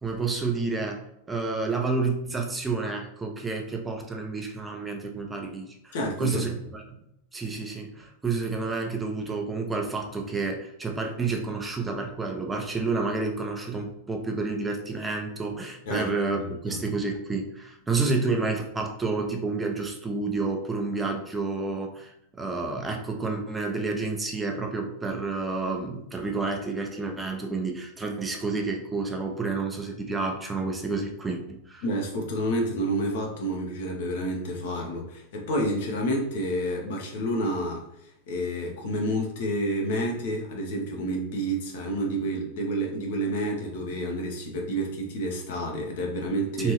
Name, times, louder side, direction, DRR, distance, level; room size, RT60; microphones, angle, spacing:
voice 1, 0.0-6.8 7.3-31.8 46.6-46.7, right 3 dB, 15° right, 2 dB, 0.4 m, -30 dB
voice 2, 5.9-6.5 15.9-16.8 31.8-37.9 38.3-46.7, right 1 dB, 55° left, 1 dB, 0.7 m, -29 dB
3.0 x 2.6 x 2.9 m, 0.79 s
figure-of-eight pair, 90°, 0 cm